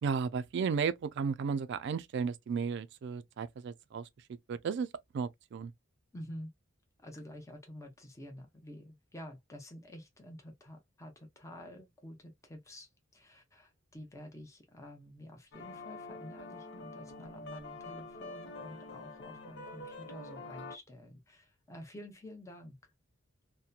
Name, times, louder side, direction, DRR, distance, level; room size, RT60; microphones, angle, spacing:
voice 1, 0.0-4.1 4.5-4.9 5.1-5.7, right 6 dB, 60° right, 0.3 m, -34 dB
voice 2, 6.1-6.5 7.0-22.8, equal, 15° left, 0.7 m, -49 dB
sound 1, 15.5-20.8, left 3 dB, 60° left, 0.7 m, -46 dB
2.8 x 2.1 x 2.3 m
head